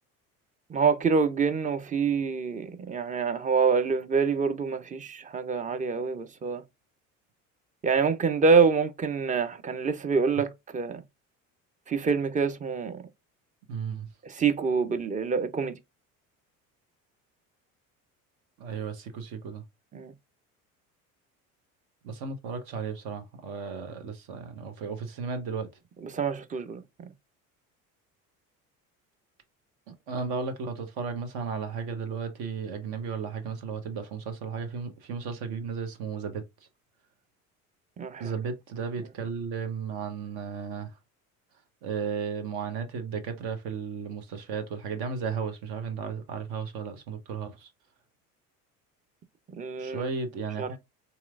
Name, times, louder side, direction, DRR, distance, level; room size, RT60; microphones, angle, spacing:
voice 1, 0.7-6.6 7.8-11.0 11.9-13.0 14.2-15.7 19.9-20.1 26.1-26.8 38.0-38.3 49.5-50.0 50.6-50.7, right 5 dB, 20° right, 0.5 m, -26 dB
voice 2, 13.7-14.1 18.6-19.6 22.0-25.7 30.1-36.4 38.2-41.0 41.8-47.7 49.7-50.8, right 5 dB, 60° right, 1.1 m, -34 dB
3.9 x 2.9 x 2.4 m
hypercardioid pair, 65°, 43 cm